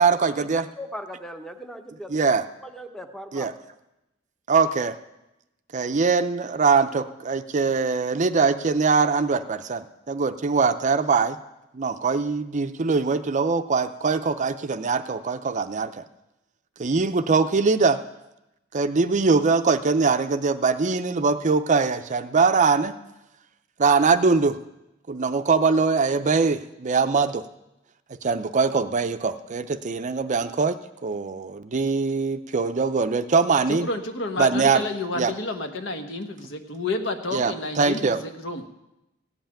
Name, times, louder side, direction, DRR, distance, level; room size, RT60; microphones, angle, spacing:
voice 1, 0.0-0.7 2.1-2.4 3.3-3.5 4.5-5.0 5.7-9.8 10.1-11.4 11.7-16.0 16.8-18.0 18.7-22.9 23.8-24.6 25.1-27.4 28.2-33.9 34.4-34.9 35.1-35.3 37.3-38.2, right 4 dB, 40° right, 10 dB, 0.5 m, -22 dB
voice 2, 0.5-2.1 2.6-3.5, equal, ahead, 6 dB, 0.8 m, -38 dB
voice 3, 33.7-38.7, left 2 dB, 65° left, 6 dB, 1.2 m, -30 dB
16.0 x 5.7 x 8.8 m, 0.92 s
head